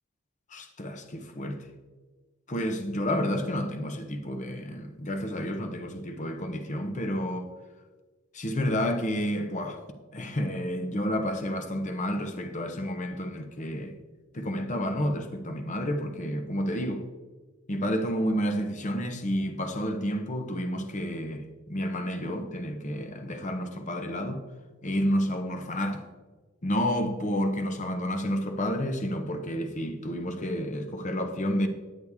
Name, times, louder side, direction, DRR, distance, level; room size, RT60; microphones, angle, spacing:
voice 1, 0.5-1.7 2.5-7.5 8.3-9.8 10.1-14.0 14.3-17.1 17.7-24.4 24.8-26.1 26.6-31.7, equal, 35° left, 0.8 m, -30 dB
10.0 x 8.3 x 3.5 m
head